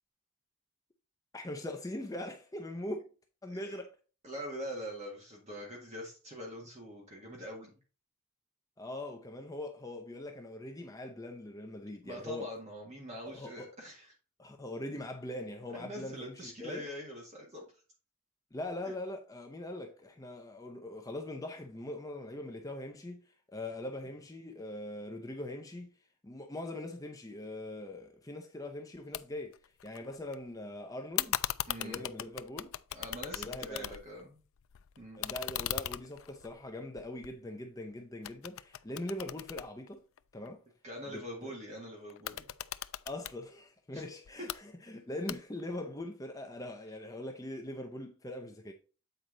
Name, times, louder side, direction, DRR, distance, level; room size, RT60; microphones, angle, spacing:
voice 1, 1.3-3.1 3.4-3.9 8.8-12.5 13.3-13.7 14.4-16.9 18.5-25.9 26.2-31.4 31.8-32.7 33.3-33.9 35.2-40.0 40.3-40.6 41.1-41.5 43.1-48.7, left 1 dB, 15° left, 0.6 m, -42 dB
voice 2, 3.5-3.8 4.2-7.8 12.0-14.1 15.7-17.6 18.8-18.9 31.7-32.0 32.9-34.4 35.0-35.3 40.8-42.5 43.9-44.0, equal, 30° right, 1.7 m, -44 dB
sound 1, 29.1-29.2 29.5-30.4 31.2-34.2 34.6-37.8 38.2-40.5 42.1-43.4 44.2-44.6 45.3-45.7, left 12 dB, 65° left, 0.3 m, -38 dB
8.0 x 4.5 x 3.8 m
head